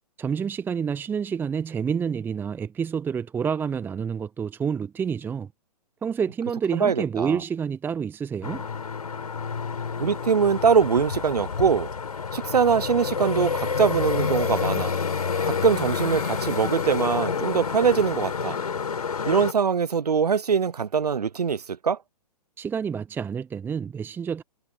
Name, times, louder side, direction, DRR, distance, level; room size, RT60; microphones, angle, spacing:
voice 1, 0.2-5.5 6.0-8.6 22.6-24.4, right 7 dB, 10° right, 0.9 m, -28 dB
voice 2, 6.7-7.4 10.0-11.9 12.3-14.9 15.4-18.6 19.2-22.0, right 6 dB, 70° right, 0.9 m, -23 dB
sound 1, 8.4-19.5, left 6 dB, 65° left, 4.7 m, -28 dB
figure-of-eight pair, 120°, 21 cm